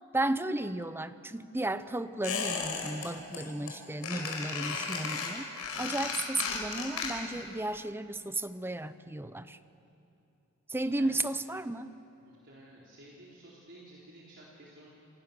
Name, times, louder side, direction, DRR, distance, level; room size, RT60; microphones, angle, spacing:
voice 1, 0.1-5.5 5.8-9.6 10.7-11.9, right 2 dB, 10° right, 12 dB, 0.7 m, -34 dB
Squeak, 2.2-3.1 3.3-3.7 4.0-7.4 7.7-7.8, left 5 dB, 90° left, 5.2 m, -35 dB
voice 2, 10.8-11.2 12.2-14.9, right 1 dB, 55° right, -5 dB, 3.9 m, -53 dB
28.5 x 28.0 x 6.9 m, 2.8 s
head